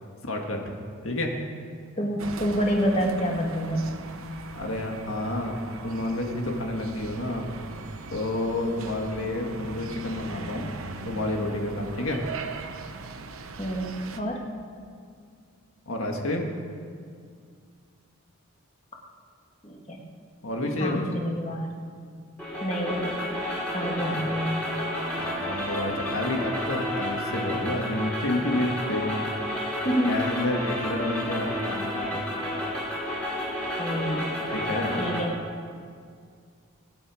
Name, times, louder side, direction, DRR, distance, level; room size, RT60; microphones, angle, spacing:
voice 1, 0.2-0.8 1.0-1.3 4.6-5.6 5.8-7.6 8.1-10.7 11.0-12.2 15.9-16.5 20.4-21.0 24.0-24.3 25.2-29.3 30.0-32.2 34.5-35.0, left 1 dB, 70° left, 2 dB, 1.7 m, -29 dB
voice 2, 2.0-3.9 13.6-14.5 19.6-20.0 20.8-21.7 22.6-23.4 23.7-24.8 29.8-30.2 33.8-34.3 35.0-35.5, equal, 30° left, 0 dB, 1.7 m, -28 dB
sound 1, 2.2-14.2, right 3 dB, 75° right, 0.9 m, -40 dB
sound 2, 22.4-35.2, left 1 dB, 5° left, 3.3 m, -31 dB
23.0 x 8.8 x 5.0 m, 2.2 s
head